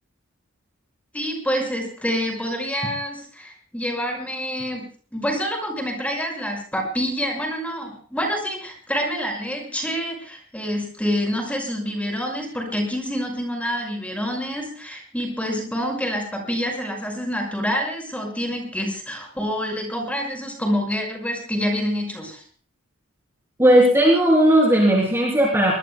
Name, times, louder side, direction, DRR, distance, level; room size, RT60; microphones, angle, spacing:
voice 1, 1.1-4.9 5.1-22.4, equal, 5° left, 1 dB, 5.4 m, -27 dB
voice 2, 23.6-25.8, right 1 dB, 10° right, -3 dB, 3.3 m, -16 dB
24.0 x 20.0 x 2.2 m, 0.41 s
head